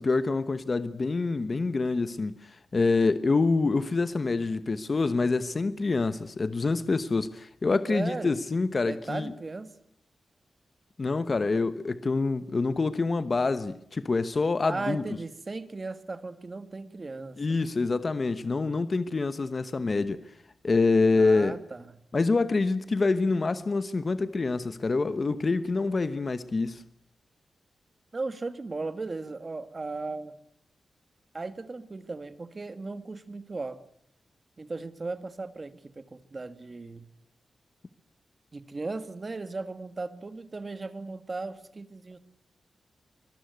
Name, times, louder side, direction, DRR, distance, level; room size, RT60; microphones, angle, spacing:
voice 1, 0.0-2.3 2.7-9.3 11.0-15.0 17.4-20.2 20.6-21.5 22.1-26.8, left 3 dB, 35° left, 1.0 m, -26 dB
voice 2, 7.9-8.4 8.8-9.7 14.7-17.6 21.1-22.0 28.1-30.3 31.3-33.8 34.6-37.1 38.5-42.2, right 3 dB, 30° right, 1.7 m, -36 dB
24.5 x 21.5 x 9.4 m
wide cardioid pair, 160°, 0 cm